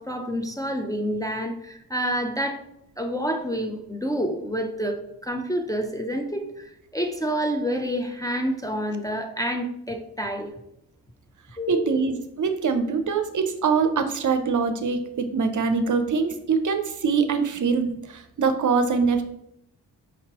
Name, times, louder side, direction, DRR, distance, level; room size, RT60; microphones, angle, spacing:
voice 1, 0.0-2.6 3.0-10.5 11.6-12.1, equal, 10° left, 3 dB, 0.5 m, -28 dB
voice 2, 11.7-19.2, right 5 dB, 45° right, 8 dB, 0.6 m, -23 dB
5.2 x 2.9 x 2.9 m, 0.77 s
supercardioid pair, 40°, 42 cm